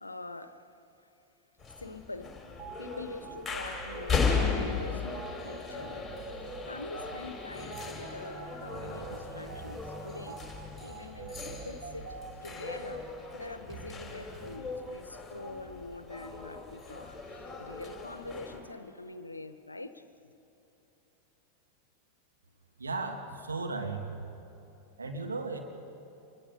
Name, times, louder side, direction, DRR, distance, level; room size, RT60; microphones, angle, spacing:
voice 1, 0.0-0.6 1.8-2.4 2.8-6.1 6.7-10.4 10.8-20.0, left 2 dB, 80° left, 12 dB, 0.9 m, -44 dB
sound 1, 1.6-18.6, left 5 dB, 10° left, 3.8 m, -37 dB
sound 2, 2.6-2.8 3.2-13.0, right 4 dB, 40° right, 2.7 m, -45 dB
sound 3, 7.5-14.6, right 1 dB, 15° right, 1.6 m, -50 dB
voice 2, 22.8-24.1 25.0-25.6, right 3 dB, 75° right, 3 dB, 1.9 m, -35 dB
26.5 x 22.0 x 5.2 m, 3.0 s
figure-of-eight pair, 90°, 0 cm